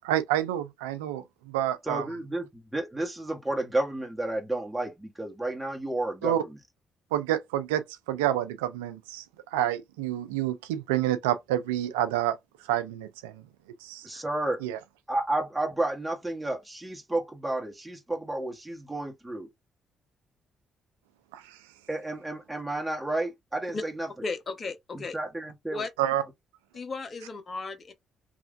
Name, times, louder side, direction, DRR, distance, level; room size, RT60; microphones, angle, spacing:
voice 1, 0.0-2.1 6.2-6.4 7.1-9.2 9.5-12.4 12.7-13.4 13.8-14.1 14.6-14.8 21.3-21.6 26.0-26.2, right 12 dB, 85° right, 0.4 m, -28 dB
voice 2, 1.8-6.6 14.0-14.6 15.1-19.5 21.9-24.1 24.9-25.8, right 2 dB, 10° right, 1.1 m, -31 dB
voice 3, 24.2-25.2 25.7-25.9 26.7-27.9, left 3 dB, 45° left, 0.7 m, -35 dB
3.1 x 2.4 x 2.5 m
hypercardioid pair, 45°, 0 cm